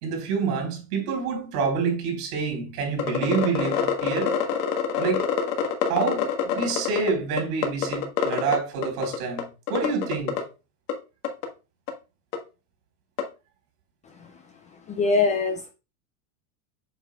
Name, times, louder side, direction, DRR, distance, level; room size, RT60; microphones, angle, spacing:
voice 1, 0.0-4.4 5.0-5.3 5.8-10.4, right 5 dB, 75° right, 3.9 m, -27 dB
sound 1, 3.0-7.1 7.4-8.6 8.8-9.4 9.7-10.4 10.9-11.0 11.2-11.4 11.9-12.0 12.3-12.4 13.2-13.3, left 8 dB, 80° left, 1.6 m, -25 dB
voice 2, 14.9-15.7, left 4 dB, 20° left, 0.3 m, -22 dB
8.2 x 5.6 x 2.3 m
supercardioid pair, 135°, 47 cm